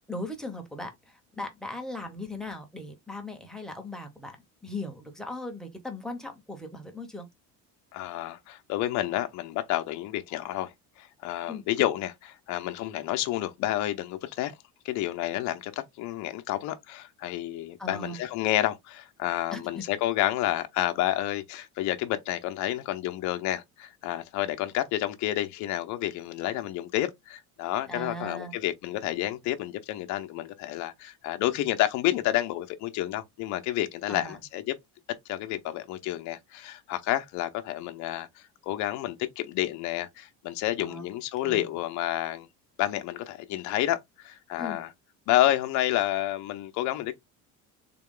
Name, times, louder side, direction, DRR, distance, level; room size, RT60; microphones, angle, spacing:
voice 1, 0.1-4.4 4.6-7.3 11.5-11.6 17.8-18.2 19.5-19.8 27.9-28.5 34.1-34.4 40.8-41.0 41.4-41.7 44.6-44.8, left 2 dB, ahead, 0.8 m, -38 dB
voice 2, 7.9-14.5 14.8-34.8 35.3-38.3 38.7-42.5 42.8-44.9 45.3-47.2, left 14 dB, 60° left, 0.6 m, -30 dB
3.6 x 2.3 x 3.7 m
cardioid pair, 150°, 33 cm